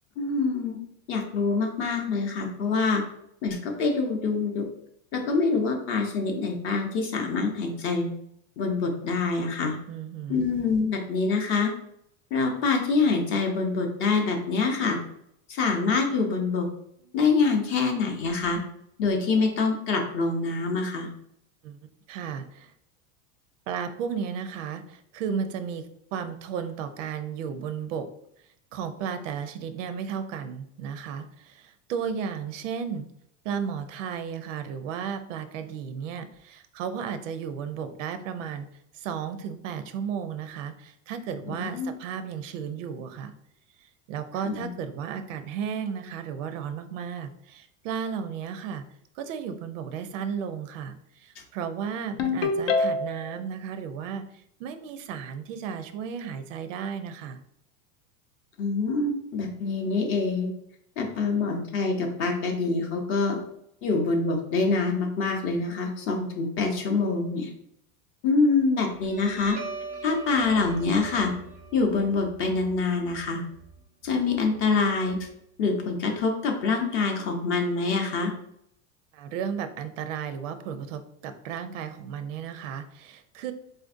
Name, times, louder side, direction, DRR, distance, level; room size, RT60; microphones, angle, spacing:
voice 1, 0.2-0.8 1.1-3.0 3.4-4.6 5.1-8.1 8.6-9.8 10.3-11.7 12.3-15.0 15.5-16.7 17.1-18.6 19.0-21.1 41.6-41.9 44.4-44.7 58.6-60.5 61.0-63.4 63.8-67.5 68.2-69.6 70.0-71.3 71.7-73.4 74.0-75.3 75.6-78.3, left 4 dB, 35° left, 3 dB, 0.5 m, -25 dB
voice 2, 9.9-10.5 21.6-21.8 22.1-22.7 23.7-28.1 28.7-33.1 33.4-38.7 38.9-43.3 43.8-48.8 49.2-57.4 79.1-83.5, right 7 dB, 85° right, 10 dB, 0.5 m, -34 dB
Ringtone, 52.2-53.4, left 3 dB, 75° left, 0.7 m, -25 dB
Guitar, 68.8-75.8, right 4 dB, 20° right, 0.4 m, -42 dB
4.1 x 2.5 x 2.5 m, 0.73 s
supercardioid pair, 155°, 38 cm